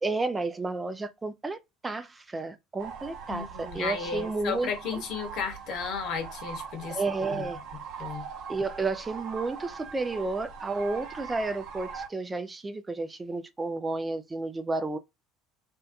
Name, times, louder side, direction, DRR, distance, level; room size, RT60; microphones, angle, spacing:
voice 1, 0.0-1.6 1.8-5.0 6.9-7.6 8.5-15.0, right 3 dB, 20° right, 0.4 m, -32 dB
sound 1, 2.8-12.1, right 6 dB, 60° right, 0.8 m, -41 dB
voice 2, 3.3-7.0 7.3-7.4 8.0-8.3, left 6 dB, 60° left, 0.9 m, -34 dB
2.7 x 2.2 x 2.4 m
hypercardioid pair, 70°, 0 cm